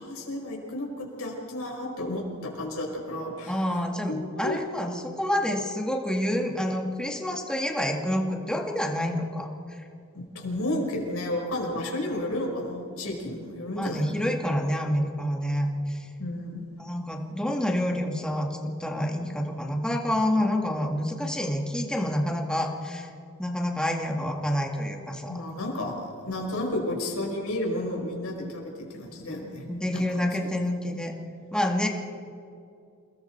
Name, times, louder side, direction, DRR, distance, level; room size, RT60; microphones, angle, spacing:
voice 1, 0.0-3.6 4.1-4.6 10.1-14.3 16.2-16.6 25.3-25.9 26.2-30.0, left 1 dB, 70° left, 0 dB, 5.3 m, -32 dB
voice 2, 3.5-9.8 13.8-16.1 16.8-23.1 23.4-25.4 29.7-31.1 31.5-31.9, left 1 dB, 5° left, 1 dB, 2.0 m, -28 dB
29.0 x 20.0 x 4.6 m, 2.5 s
head